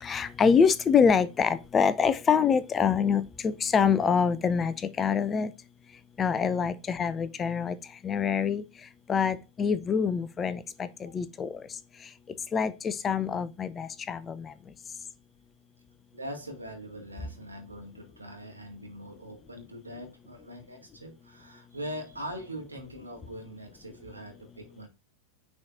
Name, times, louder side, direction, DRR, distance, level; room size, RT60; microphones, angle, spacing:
voice 1, 0.0-5.5 6.2-7.8 8.0-8.6 9.1-11.5 12.5-14.5, left 6 dB, 20° left, 0.6 m, -25 dB
voice 2, 16.1-24.9, equal, 80° right, 2.1 m, -42 dB
9.4 x 4.8 x 2.7 m
figure-of-eight pair, 90°, 0 cm